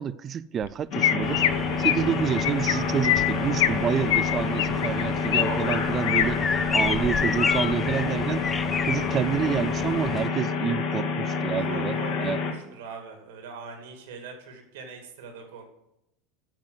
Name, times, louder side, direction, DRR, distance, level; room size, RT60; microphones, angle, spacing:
voice 1, 0.0-1.4 1.8-6.4 6.7-8.5 8.9-12.4, right 8 dB, 35° right, 0.4 m, -28 dB
Chirp tweet, 0.6-0.7 1.0-1.5 1.8-2.0 2.4-2.7 3.0-3.8 4.1-5.4 5.7-6.2 6.7-6.9 7.4-7.7, left 12 dB, 80° left, 0.6 m, -24 dB
sound 1, 0.9-12.5, left 4 dB, 55° left, 2.4 m, -28 dB
sound 2, 1.2-10.3, left 5 dB, 20° left, 0.5 m, -32 dB
voice 2, 11.7-15.6, right 5 dB, 75° right, 2.4 m, -42 dB
8.9 x 5.8 x 7.9 m
hypercardioid pair, 105°, 0 cm